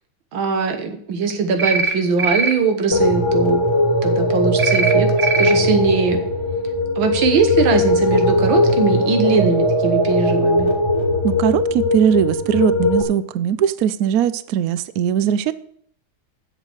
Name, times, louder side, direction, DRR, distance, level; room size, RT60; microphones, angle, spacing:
voice 1, 0.3-3.6 4.0-5.1 5.4-6.2 7.0-10.7, right 5 dB, 90° right, 6 dB, 2.1 m, -20 dB
sound 1, 1.6-1.9 2.2-2.5 4.6-4.9 5.2-5.5, right 4 dB, 55° right, 0.4 m, -20 dB
sound 2, 2.9-13.0, left 1 dB, 15° left, 1.3 m, -19 dB
voice 2, 11.2-15.5, right 9 dB, 70° right, 15 dB, 0.8 m, -19 dB
8.0 x 6.6 x 7.9 m, 0.66 s
omnidirectional pair, 2.1 m